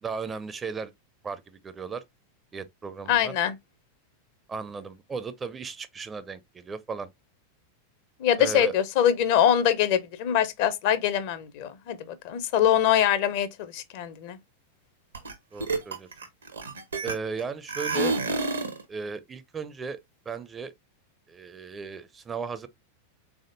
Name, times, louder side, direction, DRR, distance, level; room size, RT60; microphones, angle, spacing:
voice 1, 0.0-0.9 1.2-2.0 2.5-3.3 4.5-7.1 8.4-8.7 15.5-16.1 17.0-18.2 18.9-20.0 20.3-20.7 21.3-22.7, right 5 dB, 20° right, 0.4 m, -35 dB
voice 2, 3.1-3.6 8.2-14.4, left 10 dB, 50° left, 0.5 m, -24 dB
sound 1, 15.1-15.3 15.6-17.4 17.7-18.8, right 3 dB, 75° right, 0.7 m, -29 dB
3.6 x 3.5 x 2.5 m
figure-of-eight pair, 90°, 0 cm